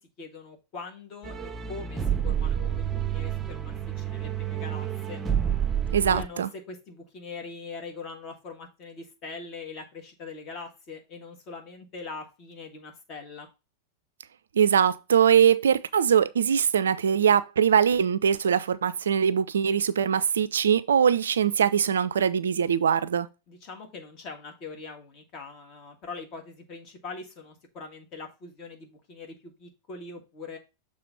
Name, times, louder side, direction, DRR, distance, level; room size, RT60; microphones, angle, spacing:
voice 1, 0.2-5.2 6.0-13.5 23.5-30.6, left 4 dB, 35° left, 1.8 m, -42 dB
sound 1, 1.2-6.3, right 9 dB, 15° right, 0.6 m, -29 dB
voice 2, 5.9-6.5 14.5-23.3, right 8 dB, 65° right, 0.3 m, -22 dB
6.7 x 3.4 x 5.3 m
figure-of-eight pair, 90°, 0 cm